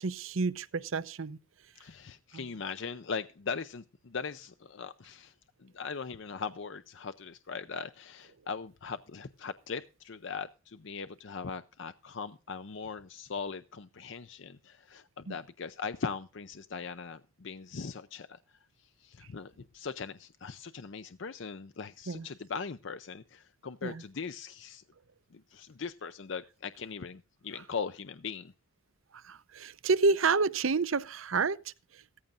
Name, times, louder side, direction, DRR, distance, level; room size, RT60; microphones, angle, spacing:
voice 1, 0.0-1.4 2.3-2.5 15.3-15.4 22.1-22.3 23.8-24.0 29.1-32.0, right 4 dB, 80° right, 0.7 m, -29 dB
voice 2, 1.8-5.3 5.6-24.8 25.3-28.5, left 5 dB, 65° left, 0.6 m, -40 dB
16.0 x 14.5 x 2.5 m
head